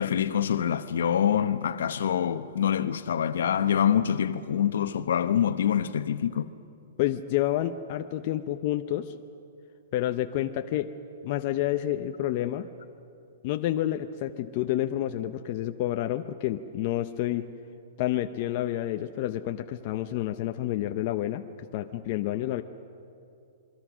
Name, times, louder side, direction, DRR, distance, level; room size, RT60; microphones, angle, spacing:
voice 1, 0.0-6.5, left 9 dB, 70° left, 1.0 m, -25 dB
voice 2, 7.0-9.1 9.9-10.9 11.2-12.7 13.4-17.5 18.0-22.6, left 13 dB, 35° left, 0.6 m, -29 dB
27.5 x 23.0 x 6.2 m
hypercardioid pair, 175°, 0 cm